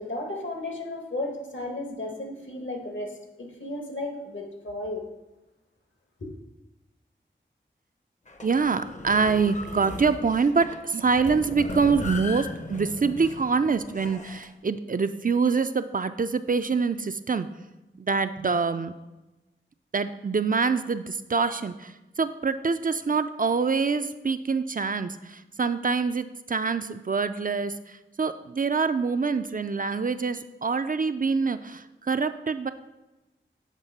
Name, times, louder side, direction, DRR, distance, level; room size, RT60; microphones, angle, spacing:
voice 1, 0.0-5.0 6.2-6.3, left 2 dB, 70° left, 1 dB, 1.3 m, -34 dB
sound 1, 8.3-14.5, left 2 dB, 40° left, 0.7 m, -38 dB
voice 2, 8.4-17.5 18.0-18.9 19.9-32.7, right 5 dB, 45° right, 11 dB, 0.4 m, -25 dB
7.4 x 3.5 x 5.4 m, 1.0 s
wide cardioid pair, 40°, 20 cm